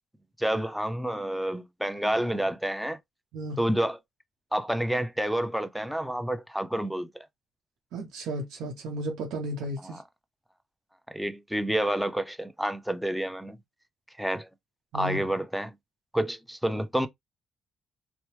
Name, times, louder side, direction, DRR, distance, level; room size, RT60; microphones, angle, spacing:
voice 1, 0.4-3.0 3.6-4.0 4.5-7.1 9.8-10.0 11.1-13.6 14.2-14.5 14.9-15.7 16.1-17.1, right 1 dB, ahead, 0.4 m, -29 dB
voice 2, 7.9-10.0 14.9-15.2, right 1 dB, 85° right, 0.7 m, -34 dB
2.9 x 2.0 x 3.0 m
cardioid pair, 90°, 0 cm